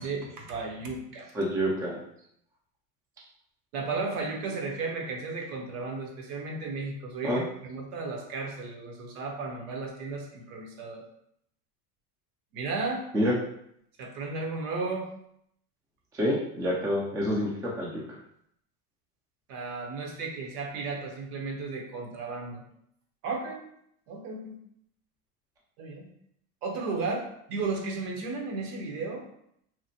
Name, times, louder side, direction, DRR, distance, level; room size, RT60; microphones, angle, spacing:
voice 1, 0.0-1.3 3.7-11.0 12.5-13.0 14.0-15.1 19.5-22.6 23.2-23.6 24.1-24.6 25.8-26.1 26.6-29.3, right 3 dB, 70° right, 0 dB, 0.9 m, -34 dB
voice 2, 1.3-2.0 7.2-7.4 13.1-13.3 16.1-18.0, equal, 10° right, -4 dB, 0.3 m, -27 dB
2.9 x 2.1 x 2.7 m, 0.72 s
hypercardioid pair, 100°, 47 cm